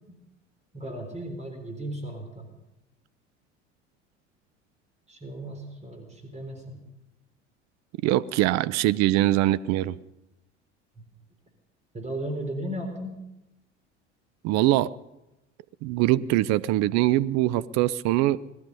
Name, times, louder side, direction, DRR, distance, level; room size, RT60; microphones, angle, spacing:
voice 1, 0.7-2.5 5.1-6.8 11.0-11.1 11.9-13.1, right 1 dB, 20° right, 3.6 m, -35 dB
voice 2, 8.0-10.0 14.4-15.0 15.8-18.4, right 15 dB, 50° right, 0.7 m, -23 dB
20.5 x 12.5 x 5.4 m
figure-of-eight pair, 75°, 35 cm